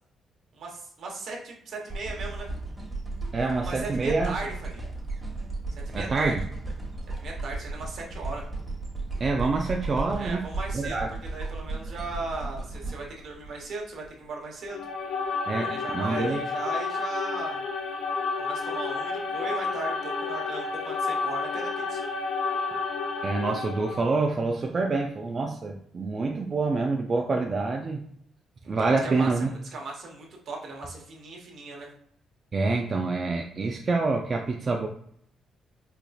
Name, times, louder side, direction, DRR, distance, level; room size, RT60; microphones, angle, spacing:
voice 1, 0.5-2.5 3.6-4.8 5.9-6.4 7.2-8.4 10.1-11.0 11.3-14.8 15.5-17.6 18.4-22.0 28.6-31.9, right 3 dB, 65° right, -1 dB, 1.0 m, -37 dB
sound 1, 1.9-14.1 14.7-14.8, right 3 dB, 15° right, 1.2 m, -35 dB
voice 2, 3.3-4.3 5.9-6.4 9.2-10.4 10.7-11.1 15.5-16.4 23.2-28.1 28.7-29.5 32.5-34.9, right 3 dB, 40° right, 2 dB, 0.3 m, -26 dB
sound 2, 14.7-24.2, left 4 dB, 75° left, 0.5 m, -31 dB
4.4 x 2.5 x 2.3 m, 0.66 s
cardioid pair, 90°, 0 cm